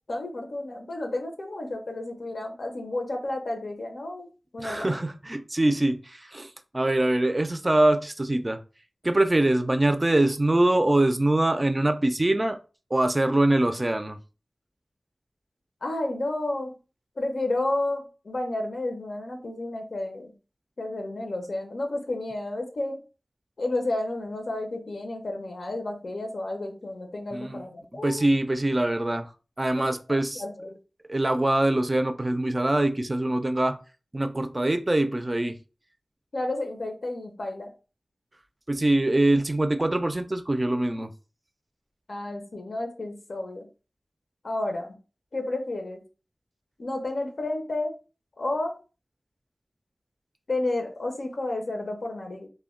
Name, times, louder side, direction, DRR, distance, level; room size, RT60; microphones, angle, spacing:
voice 1, 0.1-4.3 4.5-5.0 15.8-16.8 17.2-20.3 20.8-23.0 23.6-28.3 29.8-29.9 30.3-30.8 36.3-37.7 42.1-43.7 44.4-45.0 45.3-46.0 46.8-47.9 48.4-48.7 50.5-52.5, left 2 dB, 80° left, 0.5 m, -31 dB
voice 2, 4.6-8.6 9.0-12.6 12.9-14.2 27.3-27.6 28.0-29.3 29.6-30.4 31.1-33.8 34.1-35.6 38.7-41.1, right 1 dB, 30° right, 0.4 m, -23 dB
2.1 x 2.1 x 3.6 m
wide cardioid pair, 55°, 0 cm